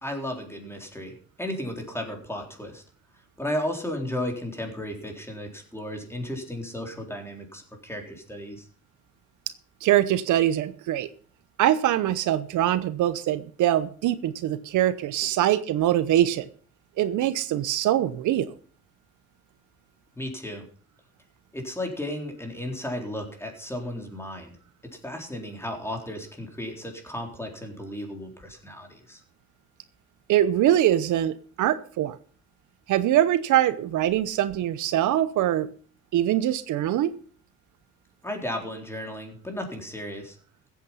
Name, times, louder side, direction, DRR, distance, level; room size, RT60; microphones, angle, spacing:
voice 1, 0.0-2.8 3.4-8.6 20.2-20.7 21.5-24.5 24.8-29.2 38.2-40.3, left 1 dB, 10° left, 3 dB, 4.0 m, -34 dB
voice 2, 9.8-11.1 11.6-16.5 17.0-18.5 30.3-32.2 32.9-35.7 36.1-37.2, right 12 dB, 85° right, 14 dB, 0.9 m, -23 dB
15.5 x 8.4 x 5.7 m, 0.43 s
cardioid pair, 90°, 30 cm